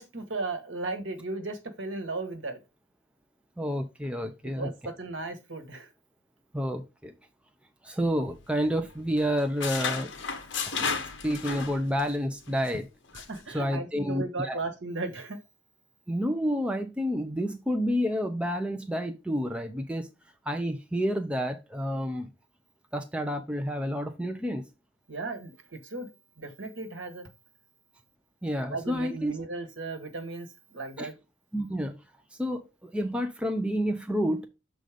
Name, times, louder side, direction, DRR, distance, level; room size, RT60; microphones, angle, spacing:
voice 1, 0.0-2.6 4.4-5.9 13.1-15.4 25.1-26.1 26.4-27.3 28.7-31.1, right 3 dB, 70° right, 1.4 m, -36 dB
voice 2, 3.6-4.7 6.5-7.1 7.8-10.1 10.7-10.8 11.2-12.8 13.5-14.6 16.1-20.1 20.5-22.3 22.9-24.6 28.4-29.3 31.0-31.1 31.5-32.0 32.4-34.5, equal, 5° right, 0.6 m, -29 dB
sound 1, 8.0-8.9 9.2-12.2 12.5-12.7 13.1-13.4, left 5 dB, 65° left, 1.1 m, -34 dB
6.5 x 3.9 x 5.0 m
head